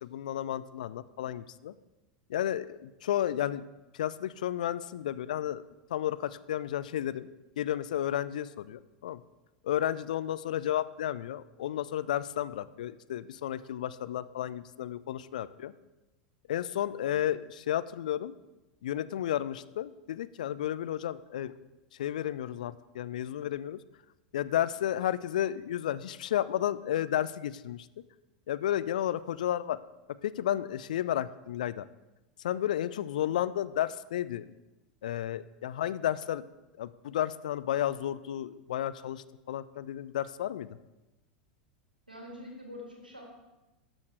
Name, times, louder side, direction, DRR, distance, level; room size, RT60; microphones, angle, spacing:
voice 1, 0.0-1.7 2.3-3.7 3.9-5.6 5.9-7.3 7.6-9.2 9.6-15.7 16.5-18.3 18.8-21.5 22.0-23.8 24.3-27.9 28.5-29.8 30.2-31.9 32.4-34.5 35.0-36.4 36.8-40.7, left 11 dB, 60° left, 16 dB, 0.3 m, -32 dB
voice 2, 42.1-43.2, left 1 dB, 85° right, 0 dB, 1.6 m, -45 dB
12.0 x 6.3 x 3.2 m, 1.0 s
figure-of-eight pair, 85°, 5 cm